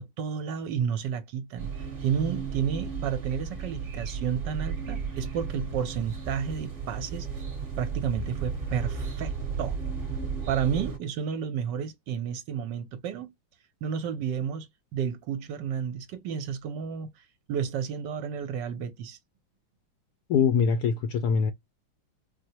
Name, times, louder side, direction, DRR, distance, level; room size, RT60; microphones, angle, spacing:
voice 1, 0.0-7.3 7.8-9.8 10.5-13.3 13.8-14.7 14.9-17.2 17.5-19.2, right 7 dB, 70° right, 1.2 m, -31 dB
sound 1, 1.6-11.0, right 6 dB, 35° right, 1.0 m, -34 dB
voice 2, 20.3-21.5, left 6 dB, 75° left, 0.9 m, -23 dB
4.5 x 2.1 x 2.7 m
omnidirectional pair, 2.2 m